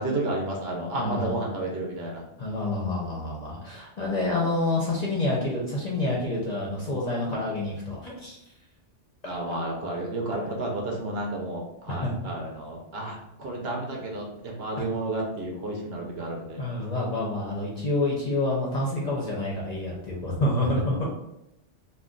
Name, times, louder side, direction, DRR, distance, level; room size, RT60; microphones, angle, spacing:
voice 1, 0.0-2.2 9.2-16.6, right 2 dB, 60° right, -1 dB, 0.8 m, -31 dB
voice 2, 0.9-1.4 2.4-8.4 9.2-9.4 11.9-12.3 14.8-14.9 16.6-21.1, left 2 dB, 45° left, -4 dB, 0.6 m, -28 dB
2.5 x 2.2 x 3.7 m, 0.83 s
omnidirectional pair, 1.2 m